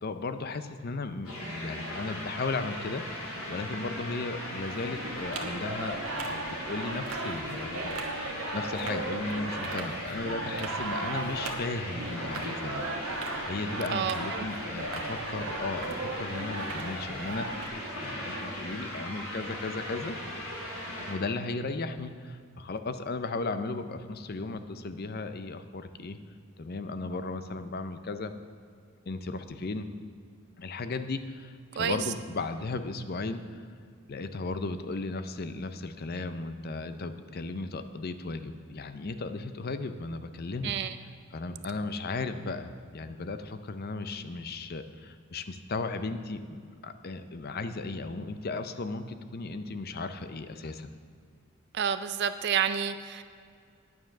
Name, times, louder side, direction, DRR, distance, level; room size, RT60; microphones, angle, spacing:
voice 1, 0.0-12.9 13.5-17.5 18.0-20.2 21.1-26.2 26.6-28.3 29.1-29.9 30.6-33.7 34.1-40.7 41.3-50.9, left 3 dB, 45° left, 10 dB, 0.5 m, -35 dB
sound 1, 1.2-21.1, left 1 dB, 75° left, 2.6 m, -38 dB
sound 2, 4.7-17.7, right 3 dB, 80° right, 1.2 m, -37 dB
voice 2, 13.9-14.5 31.8-32.0 40.6-41.0 51.7-53.2, right 8 dB, 50° right, 11 dB, 0.4 m, -29 dB
9.6 x 9.1 x 5.9 m, 2.2 s
head